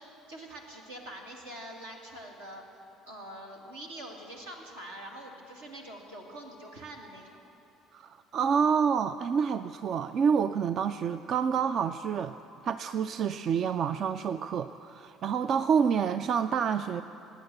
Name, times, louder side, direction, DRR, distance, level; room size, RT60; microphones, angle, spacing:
voice 1, 0.0-2.6 3.1-7.4, right 1 dB, 80° right, 0 dB, 2.1 m, -44 dB
voice 2, 7.9-12.4 12.6-17.0, right 7 dB, 50° right, 12 dB, 0.4 m, -28 dB
19.5 x 9.2 x 8.0 m, 2.9 s
figure-of-eight pair, 55°, 0 cm